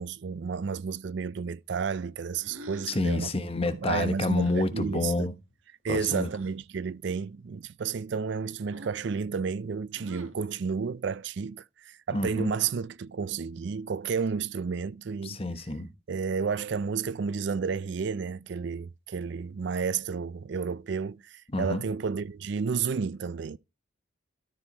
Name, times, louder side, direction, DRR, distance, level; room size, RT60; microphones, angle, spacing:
voice 1, 0.0-3.3 3.7-5.3 5.8-15.4 16.1-23.6, right 5 dB, 55° right, 0.4 m, -31 dB
sound 1, 2.4-3.1 4.3-4.7 6.1-6.5 8.7-9.1 9.9-10.5, right 1 dB, 85° right, 1.7 m, -46 dB
voice 2, 2.9-5.3 5.9-6.3 12.1-12.5 15.2-15.9 21.5-21.8, left 2 dB, 30° left, 1.1 m, -28 dB
13.0 x 4.7 x 4.3 m
head